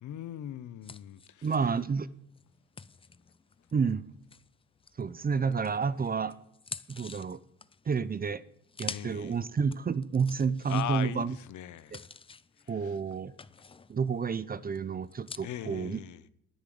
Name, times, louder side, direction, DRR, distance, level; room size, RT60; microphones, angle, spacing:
voice 1, 0.0-1.5 8.9-9.4 10.7-11.9 12.7-12.9 15.4-16.2, left 12 dB, 70° left, 0.9 m, -39 dB
sound 1, 0.8-5.2 5.6-15.4, left 5 dB, 20° left, 0.5 m, -48 dB
voice 2, 1.4-2.1 3.7-4.0 5.0-6.3 6.9-7.4 7.9-8.4 8.8-11.4 11.9-12.0 12.7-13.3 13.9-16.0, right 5 dB, 30° right, 0.6 m, -30 dB
10.5 x 9.8 x 7.8 m
cardioid pair, 90°, 30 cm